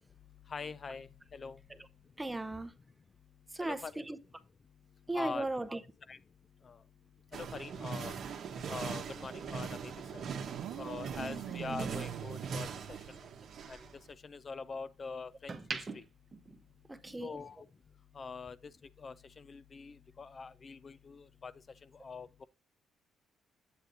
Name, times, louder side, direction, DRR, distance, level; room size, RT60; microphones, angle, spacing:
voice 1, 0.5-1.6 3.6-3.9 5.1-5.5 6.1-6.2 6.6-6.8 7.3-8.1 8.7-10.3 10.8-13.2 13.7-13.8 14.2-16.0 17.2-17.7 18.1-18.7 19.0-21.5 22.0-22.4, left 4 dB, 40° left, 0.3 m, -44 dB
voice 2, 2.2-2.8 3.5-4.2 5.1-5.8 11.2-11.4 11.7-12.0 16.9-17.4, right 2 dB, 15° right, 0.6 m, -37 dB
sound 1, 7.3-14.0, right 6 dB, 65° right, 0.9 m, -41 dB
sound 2, 10.5-13.6, right 10 dB, 85° right, 0.4 m, -44 dB
sound 3, 13.5-14.8 15.2-17.4 17.7-17.9, right 4 dB, 35° right, 0.9 m, -45 dB
8.0 x 7.7 x 2.6 m
cardioid pair, 90°, 0 cm